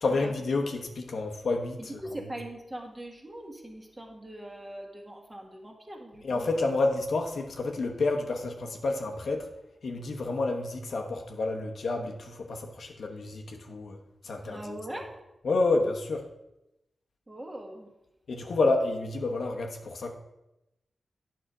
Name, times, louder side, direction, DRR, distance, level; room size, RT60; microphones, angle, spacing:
voice 1, 0.0-2.0 6.2-9.5 9.8-14.0 14.2-14.8 15.4-16.3 18.3-20.1, left 3 dB, 75° left, 2 dB, 1.1 m, -29 dB
voice 2, 2.0-6.5 14.4-15.2 17.3-17.9, right 1 dB, 20° right, 1 dB, 1.7 m, -41 dB
9.2 x 5.9 x 4.9 m, 0.93 s
wide cardioid pair, 80°, 0 cm